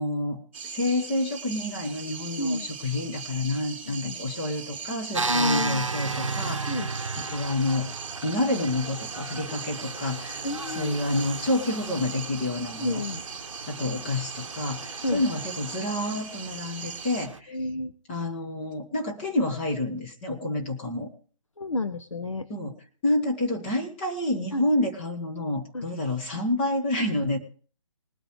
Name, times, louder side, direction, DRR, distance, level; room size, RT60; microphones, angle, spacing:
voice 1, 0.0-6.9 7.3-7.9 8.2-13.0 13.7-17.6 18.1-21.1 22.5-22.7 23.0-27.4, left 2 dB, 20° left, 0 dB, 1.6 m, -29 dB
sound 1, 0.5-17.3, right 6 dB, 20° right, 1.2 m, -39 dB
voice 2, 2.4-2.7 3.9-4.2 5.3-5.9 6.7-6.9 10.4-10.9 12.8-13.2 15.0-15.2 17.5-17.9 21.6-22.5 24.5-24.7 25.7-25.8, left 2 dB, 70° left, 10 dB, 0.9 m, -30 dB
sound 2, 5.1-17.4, right 4 dB, 70° right, 0.8 m, -35 dB
20.5 x 9.8 x 3.2 m, 0.42 s
figure-of-eight pair, 145°, 17 cm